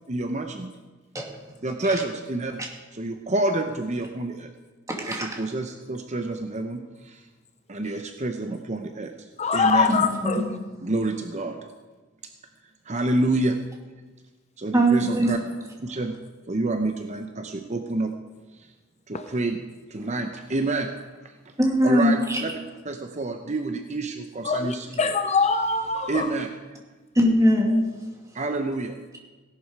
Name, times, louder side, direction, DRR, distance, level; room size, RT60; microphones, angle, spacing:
voice 1, 0.1-0.7 1.6-2.6 2.9-4.5 5.1-7.2 7.7-9.9 10.8-11.6 12.9-13.6 14.6-15.4 15.8-16.2 16.5-18.1 18.6-18.7 19.1-19.6 19.9-20.9 21.2-21.5 21.8-22.2 22.4-22.5 22.9-25.0 26.1-26.5 28.3-29.0, right 2 dB, 35° right, 0.8 m, -28 dB
voice 2, 4.9-5.4 9.9-10.5 14.7-15.4 20.0-20.1 21.6-22.4 27.1-28.1, equal, 15° right, 2.4 m, -22 dB
voice 3, 9.4-10.4 19.1-19.2 24.4-26.3, left 4 dB, 35° left, 0.7 m, -23 dB
17.0 x 11.5 x 4.8 m
head